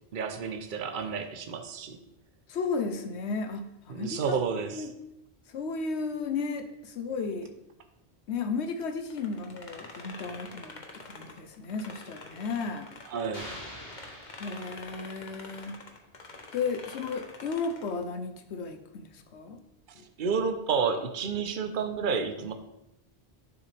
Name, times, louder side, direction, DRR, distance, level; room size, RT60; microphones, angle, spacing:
voice 1, 0.1-2.0 3.9-4.9 13.1-13.5 20.2-22.5, right 5 dB, 50° right, 7 dB, 0.9 m, -30 dB
voice 2, 2.5-4.4 4.7-4.9 5.5-7.5 8.3-12.9 14.4-15.8 16.5-19.6 19.9-20.1, left 4 dB, 85° left, 7 dB, 1.1 m, -34 dB
sound 1, 9.1-13.6 13.9-18.0, left 3 dB, 45° left, 1.1 m, -46 dB
sound 2, 13.3-15.5, equal, 60° left, 2.4 m, -45 dB
9.7 x 7.0 x 3.3 m, 0.89 s
omnidirectional pair, 1.1 m